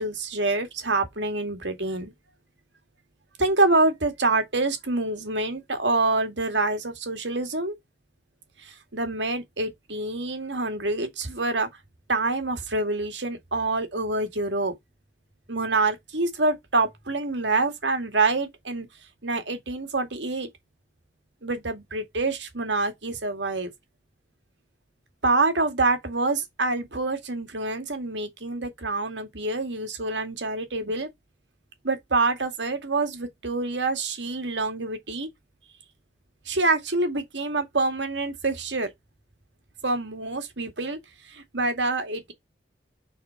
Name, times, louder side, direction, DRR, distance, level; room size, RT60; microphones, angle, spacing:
voice 1, 0.0-2.1 3.4-7.7 8.6-11.7 12.1-14.7 15.5-18.9 19.2-20.5 21.4-23.7 25.2-31.1 31.8-35.3 36.5-38.9 39.8-41.0 41.2-42.3, right 3 dB, 80° right, 2.4 m, -26 dB
6.6 x 4.3 x 4.7 m
head